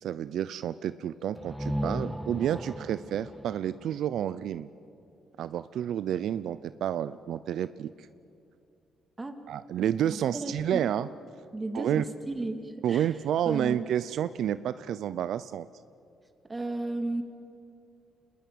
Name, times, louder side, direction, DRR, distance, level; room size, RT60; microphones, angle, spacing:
voice 1, 0.0-4.7 5.4-7.9 9.5-11.1 11.7-12.0 12.8-15.7, right 10 dB, 75° right, 15 dB, 0.5 m, -30 dB
sound 1, 1.3-5.1, equal, 5° right, 0.6 m, -37 dB
voice 2, 10.1-10.9 11.5-13.1 13.4-13.8 16.4-17.2, right 2 dB, 20° right, 6 dB, 2.7 m, -34 dB
27.0 x 20.5 x 8.6 m, 2.6 s
cardioid pair, 90°, 0 cm